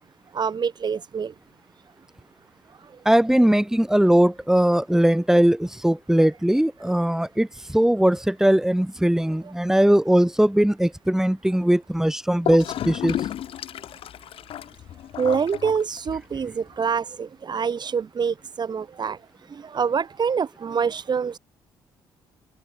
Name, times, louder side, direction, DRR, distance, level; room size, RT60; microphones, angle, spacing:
voice 1, 0.3-1.3 9.4-9.5 15.2-19.2 19.5-21.4, right 6 dB, 40° right, 5.5 m, -26 dB
voice 2, 3.0-13.2, right 1 dB, 5° right, 4.9 m, -20 dB
Gurgling / Toilet flush, 12.4-16.4, left 11 dB, 60° left, 7.9 m, -32 dB
open air
hypercardioid pair, 45°, 11 cm